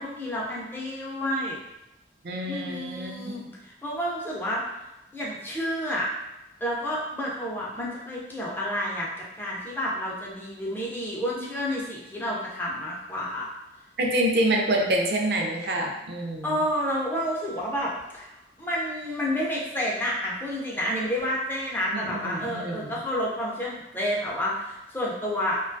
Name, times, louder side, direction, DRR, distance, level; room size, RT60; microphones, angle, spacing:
voice 1, 0.0-1.6 2.4-4.6 5.1-6.1 6.6-13.5 16.4-18.3 18.6-25.6, equal, 10° left, -5 dB, 0.4 m, -30 dB
voice 2, 2.2-3.5 14.0-16.5 21.9-22.8, right 1 dB, 65° right, 0 dB, 0.4 m, -26 dB
2.2 x 2.2 x 2.5 m, 0.92 s
head